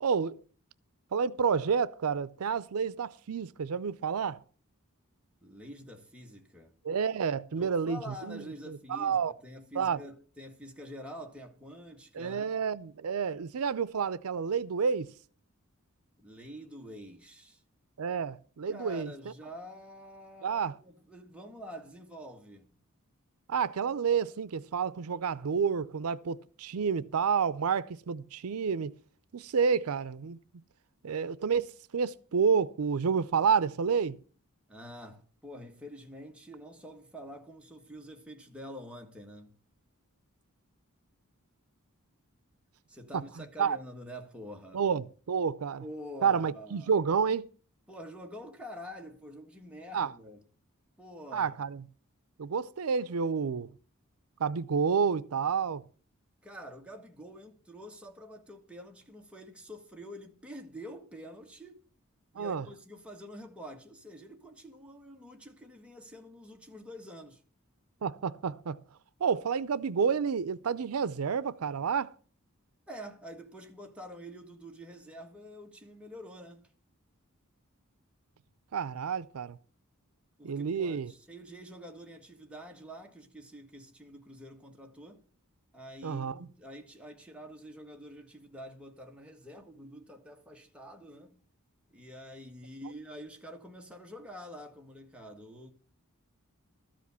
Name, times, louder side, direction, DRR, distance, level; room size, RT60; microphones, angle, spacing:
voice 1, 0.0-0.4 1.1-4.4 6.8-9.3 9.8-10.0 12.1-15.1 18.0-19.1 20.4-20.7 23.5-28.9 29.3-30.4 31.0-34.2 43.6-43.8 44.7-45.8 46.2-47.5 49.9-50.1 51.3-51.8 52.4-53.7 54.4-55.8 62.4-62.6 68.0-68.8 69.2-72.1 78.7-79.6 80.4-81.1 86.0-86.3, right 6 dB, 85° right, 0.5 m, -29 dB
voice 2, 5.4-6.7 7.5-12.5 16.2-17.6 18.7-22.8 34.7-39.6 42.9-44.9 45.8-46.9 47.9-50.4 51.0-51.6 56.4-61.8 62.3-67.4 72.9-76.7 80.4-85.2 85.7-91.4 91.9-95.7, equal, 5° right, 1.4 m, -47 dB
13.0 x 5.1 x 8.1 m
head